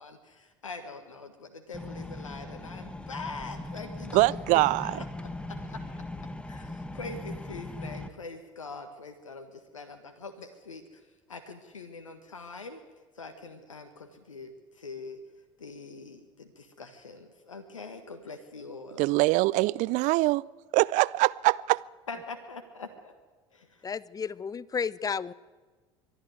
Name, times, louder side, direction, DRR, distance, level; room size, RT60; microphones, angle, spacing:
voice 1, 0.0-6.0 6.4-12.8 13.1-15.2 15.6-19.0 22.1-23.1 23.5-23.9, left 3 dB, 85° left, 1.6 m, -43 dB
sound 1, 1.7-8.1, left 2 dB, 5° left, 1.7 m, -39 dB
voice 2, 4.1-5.0 19.0-20.4 20.7-21.8, right 20 dB, 50° right, 0.5 m, -23 dB
voice 3, 23.8-25.3, left 6 dB, 20° left, 0.7 m, -32 dB
23.0 x 12.0 x 9.5 m
figure-of-eight pair, 65°, 16 cm